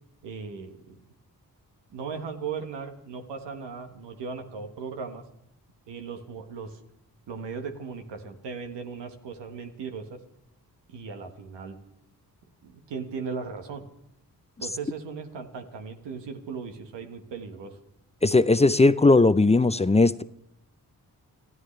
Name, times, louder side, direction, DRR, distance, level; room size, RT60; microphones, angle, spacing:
voice 1, 0.2-1.0 1.9-5.2 5.9-6.8 7.3-10.2 10.9-11.8 12.6-13.8 14.6-17.8, right 5 dB, 90° right, 1.5 m, -37 dB
voice 2, 18.2-20.2, left 3 dB, 15° left, 0.5 m, -18 dB
27.0 x 14.0 x 3.3 m
supercardioid pair, 45°, 41 cm